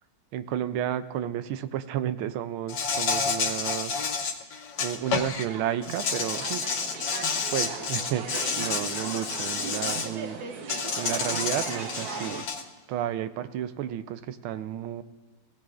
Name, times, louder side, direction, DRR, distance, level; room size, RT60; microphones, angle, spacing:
voice 1, 0.3-3.9 4.2-4.3 4.8-6.6 7.5-8.3 8.6-10.4 10.9-12.4 12.9-15.0, right 11 dB, 80° right, 12 dB, 1.4 m, -32 dB
Insect, 2.7-5.5 5.8-10.1 10.7-12.6, left 5 dB, 70° left, 1.6 m, -30 dB
sound 1, 4.8-12.4, right 5 dB, 55° right, 1.2 m, -38 dB
18.5 x 16.0 x 2.5 m, 1.2 s
omnidirectional pair, 2.3 m